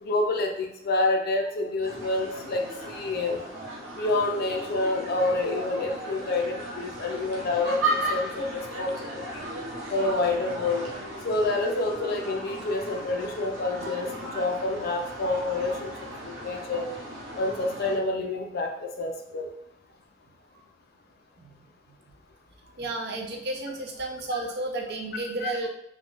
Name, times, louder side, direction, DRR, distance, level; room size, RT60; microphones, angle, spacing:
voice 1, 0.0-3.4 3.9-9.5 9.9-10.8 11.2-15.9 16.2-16.9 17.3-19.5 25.4-25.5, left 2 dB, 55° left, 3 dB, 0.4 m, -28 dB
sound 1, 1.8-18.0, right 1 dB, 90° right, 0.8 m, -36 dB
voice 2, 22.8-25.7, right 2 dB, 60° right, 1 dB, 0.5 m, -32 dB
3.5 x 2.2 x 2.4 m, 0.77 s
head